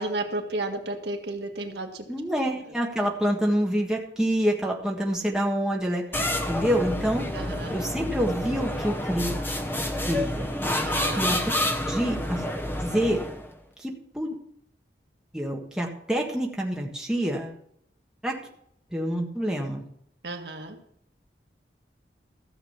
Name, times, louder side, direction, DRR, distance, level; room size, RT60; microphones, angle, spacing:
voice 1, 0.0-2.0 7.3-7.8 10.8-11.3 20.2-20.8, right 2 dB, 65° right, 3 dB, 1.8 m, -32 dB
voice 2, 2.1-6.0 6.5-7.3 7.7-9.4 10.1-10.5 11.2-11.4 11.9-12.4 12.8-13.2 13.8-14.4 15.3-17.5 18.2-18.4 18.9-19.8, equal, 5° right, -1 dB, 1.6 m, -27 dB
sound 1, 6.1-13.5, left 1 dB, 10° left, 0.9 m, -29 dB
14.5 x 7.5 x 5.8 m, 0.69 s
head